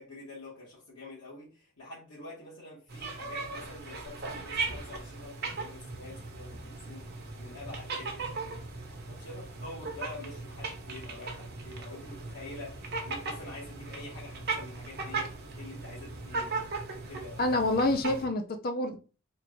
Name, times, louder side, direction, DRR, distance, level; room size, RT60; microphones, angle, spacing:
voice 1, 0.0-7.1 7.4-8.6 9.1-16.7 17.1-17.4, left 2 dB, 70° left, 1.6 m, -46 dB
sound 1, 2.9-18.3, right 3 dB, 55° right, 0.9 m, -38 dB
voice 2, 17.4-19.0, left 2 dB, 50° left, 0.5 m, -27 dB
3.6 x 2.5 x 4.4 m
head